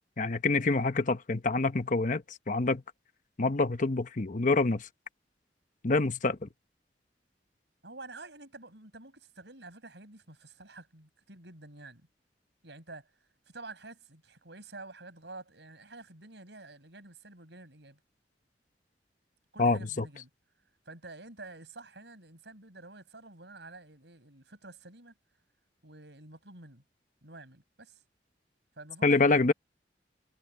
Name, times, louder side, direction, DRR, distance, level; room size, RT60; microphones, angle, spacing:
voice 1, 0.2-2.8 3.4-4.9 5.8-6.5 19.6-20.0 29.0-29.5, left 3 dB, 45° left, 1.0 m, -26 dB
voice 2, 7.8-12.1 12.6-13.1 13.5-18.0 19.5-20.3 20.8-25.1 25.8-26.8 27.2-28.0 28.8-29.5, right 2 dB, 75° right, 7.7 m, -49 dB
head